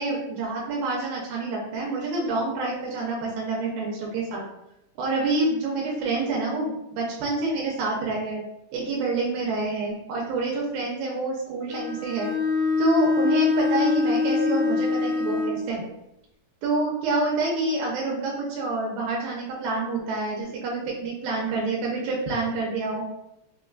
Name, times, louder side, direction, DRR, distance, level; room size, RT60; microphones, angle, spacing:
voice 1, 0.0-4.4 5.0-8.4 8.7-12.3 12.8-15.8 16.6-23.0, right 3 dB, 85° right, -3 dB, 2.4 m, -27 dB
Bowed string instrument, 11.7-15.7, left 4 dB, 80° left, 2.0 m, -24 dB
5.5 x 2.3 x 2.3 m, 0.87 s
omnidirectional pair, 4.1 m